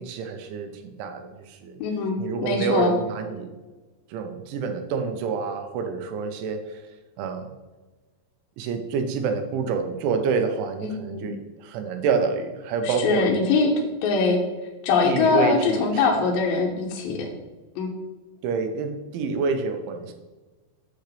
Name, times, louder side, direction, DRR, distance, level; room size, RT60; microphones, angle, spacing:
voice 1, 0.0-1.8 2.2-3.5 4.1-6.8 7.2-7.5 8.6-13.4 15.0-16.0 17.1-17.3 18.4-20.1, right 5 dB, 90° right, 6 dB, 3.1 m, -27 dB
voice 2, 1.8-2.9 10.8-11.3 12.8-13.7 14.0-14.4 14.8-17.3 17.8-17.9, left 4 dB, 75° left, -1 dB, 2.1 m, -22 dB
8.3 x 6.6 x 3.3 m, 1.2 s
omnidirectional pair, 5.4 m